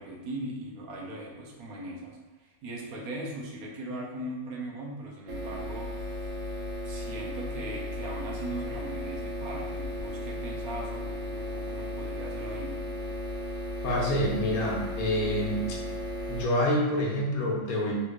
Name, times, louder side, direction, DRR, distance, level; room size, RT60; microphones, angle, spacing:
voice 1, 0.0-2.2 2.4-6.2 6.8-12.8, right 1 dB, 80° right, -2 dB, 1.1 m, -39 dB
sound 1, 5.3-16.4, left 1 dB, 60° right, 0.7 m, -35 dB
voice 2, 13.8-15.7 16.3-17.9, left 1 dB, 80° left, -2 dB, 1.2 m, -27 dB
3.3 x 3.1 x 2.4 m, 1.1 s
omnidirectional pair, 1.5 m